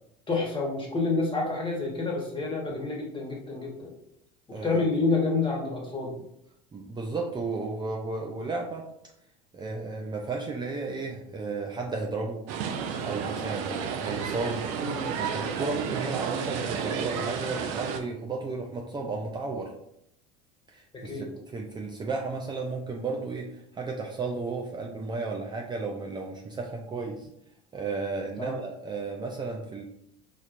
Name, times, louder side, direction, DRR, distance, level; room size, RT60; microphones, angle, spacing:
voice 1, 0.3-3.9 4.5-6.1 14.8-15.1 20.9-21.2 28.4-28.5, left 3 dB, 25° left, 0 dB, 1.3 m, -28 dB
voice 2, 4.5-4.8 6.7-8.9 9.5-12.4 13.0-14.7 15.2-19.7 20.7-27.3 27.7-29.8, right 3 dB, 20° right, 0 dB, 0.5 m, -33 dB
sound 1, 12.5-18.0, right 7 dB, 70° right, 0.5 m, -32 dB
4.2 x 3.0 x 2.5 m, 0.74 s
supercardioid pair, 95°, 20 cm